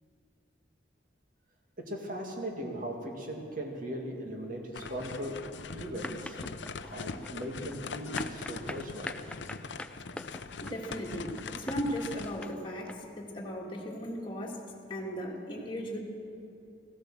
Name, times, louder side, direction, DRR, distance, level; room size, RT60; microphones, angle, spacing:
voice 1, 1.8-5.4 5.7-6.4 6.9-9.1, equal, 45° right, 1 dB, 2.1 m, -38 dB
sound 1, 4.7-12.5, left 4 dB, 70° left, 0.6 m, -41 dB
sound 2, 6.0-12.9, left 1 dB, 5° left, 0.3 m, -43 dB
voice 2, 10.6-14.6 14.9-16.0, equal, 25° left, -1 dB, 1.9 m, -37 dB
15.5 x 12.0 x 7.5 m, 2.8 s
head